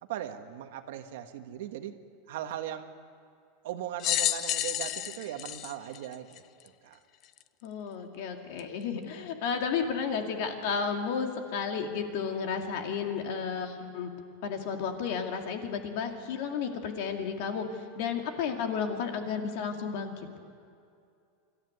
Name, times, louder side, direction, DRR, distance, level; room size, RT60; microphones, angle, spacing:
voice 1, 0.0-2.0 2.3-2.9 3.6-7.0, right 11 dB, 60° right, 7 dB, 1.4 m, -39 dB
sound 1, 4.0-6.7 7.4-7.5 8.6-8.7, left 13 dB, 30° left, 0.5 m, -31 dB
voice 2, 7.6-14.1 14.4-20.3, left 6 dB, 50° left, 4 dB, 2.3 m, -32 dB
25.5 x 13.5 x 9.6 m, 2.4 s
supercardioid pair, 175°, 0 cm